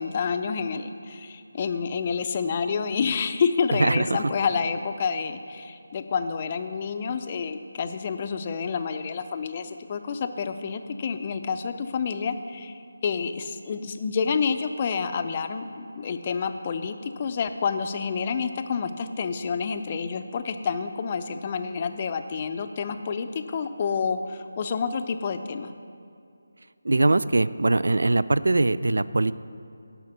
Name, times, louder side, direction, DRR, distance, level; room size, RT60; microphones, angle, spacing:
voice 1, 0.0-25.7, left 5 dB, 30° left, 8 dB, 0.5 m, -29 dB
voice 2, 3.8-4.2 26.8-29.3, right 2 dB, 70° right, 17 dB, 0.3 m, -22 dB
10.5 x 5.8 x 7.1 m, 2.5 s
figure-of-eight pair, 160°, 0 cm